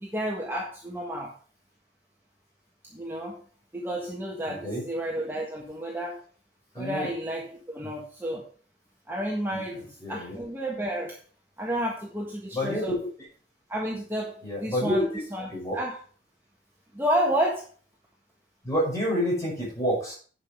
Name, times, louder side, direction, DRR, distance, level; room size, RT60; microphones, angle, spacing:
voice 1, 0.0-1.3 2.9-3.4 3.7-6.2 6.7-8.5 9.1-11.2 11.6-13.0 13.7-16.0 16.9-17.7, right 1 dB, 10° right, -2 dB, 1.4 m, -31 dB
voice 2, 4.5-4.8 6.8-7.1 9.5-9.6 10.0-10.3 12.5-12.9 14.4-15.1 15.5-15.8 18.6-20.1, equal, 15° left, -4 dB, 5.5 m, -28 dB
9.5 x 5.6 x 5.4 m, 0.42 s
head